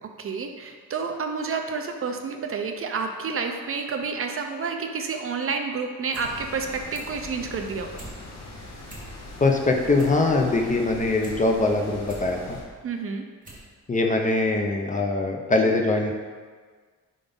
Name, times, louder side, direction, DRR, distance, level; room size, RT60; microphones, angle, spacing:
voice 1, 0.0-7.9 12.8-13.3, right 5 dB, 45° right, 4 dB, 0.5 m, -30 dB
sound 1, 5.9-6.3 6.6-7.2 7.6-8.2 8.5-8.6 8.8-9.4 9.7-11.4 11.8-12.3 12.9-13.0 13.4-13.7 14.0-14.1, right 3 dB, 25° right, 1.3 m, -44 dB
sound 2, 6.1-12.6, left 2 dB, 55° left, 1.2 m, -41 dB
voice 2, 9.4-12.6 13.9-16.1, left 2 dB, 25° left, 2 dB, 0.5 m, -22 dB
4.9 x 3.8 x 5.2 m, 1.5 s
wide cardioid pair, 150°, 31 cm